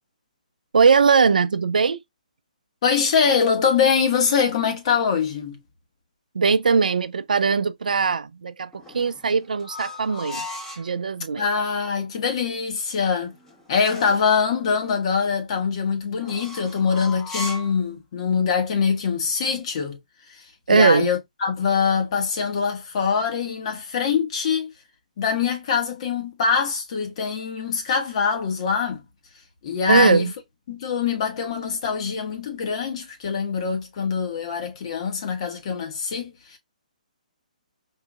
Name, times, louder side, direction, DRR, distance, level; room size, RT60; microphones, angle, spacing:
voice 1, 0.7-2.0 6.3-10.5 10.8-11.4 20.7-21.1 29.9-30.3, right 5 dB, 75° right, 0.5 m, -20 dB
voice 2, 2.8-5.6 11.4-13.3 13.7-20.0 20.3-20.4 20.7-24.7 25.2-29.0 29.6-30.3 30.7-36.6, left 6 dB, 45° left, 1.4 m, -23 dB
sound 1, 8.7-10.9 12.9-14.3 16.2-17.8, left 2 dB, 10° left, 1.3 m, -37 dB
4.6 x 2.8 x 2.4 m
hypercardioid pair, 140°, 4 cm